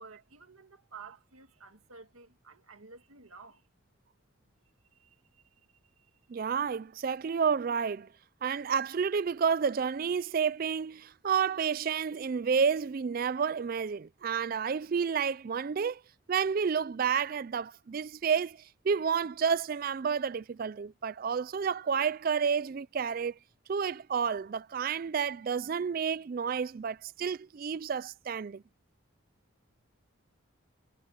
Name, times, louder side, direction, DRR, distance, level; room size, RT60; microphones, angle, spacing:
voice 1, 0.0-3.7 4.9-6.2, right 5 dB, 90° right, 2.0 m, -53 dB
voice 2, 6.3-8.1 8.4-16.0 16.3-23.4 23.7-28.6, right 6 dB, 45° right, 0.3 m, -30 dB
head